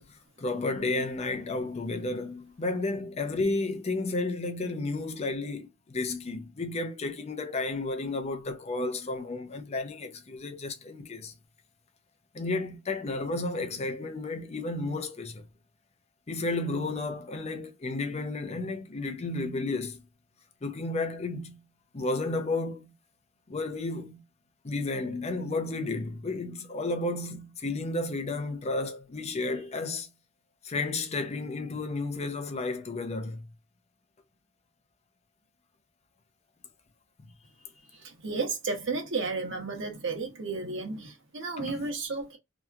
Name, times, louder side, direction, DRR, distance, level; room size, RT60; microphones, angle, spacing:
voice 1, 0.0-11.3 12.3-15.5 16.3-20.0 20.6-21.6 21.9-22.9 23.5-24.2 24.6-30.1 30.6-33.5 41.6-41.8, left 2 dB, 30° left, 0.5 m, -32 dB
voice 2, 37.9-42.4, right 4 dB, 65° right, 0.9 m, -33 dB
2.8 x 2.3 x 2.2 m
head